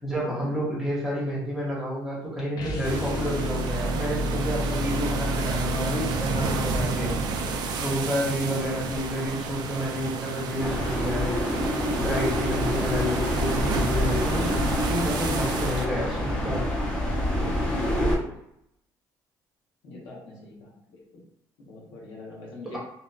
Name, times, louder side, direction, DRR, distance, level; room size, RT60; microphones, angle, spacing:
voice 1, 0.0-7.1 7.8-11.4 11.9-16.6 22.6-22.8, equal, 5° right, -6 dB, 1.1 m, -30 dB
sound 1, 2.5-8.7, equal, 60° left, 0.6 m, -31 dB
sound 2, 2.8-15.9, right 5 dB, 65° right, 0.4 m, -31 dB
sound 3, 10.6-18.2, equal, 15° left, 0.7 m, -27 dB
voice 2, 17.3-17.8 18.2-18.3 19.8-20.7 21.6-22.8, left 2 dB, 90° left, -4 dB, 1.0 m, -43 dB
2.8 x 2.4 x 2.3 m, 0.78 s
cardioid pair, 120°, 8 cm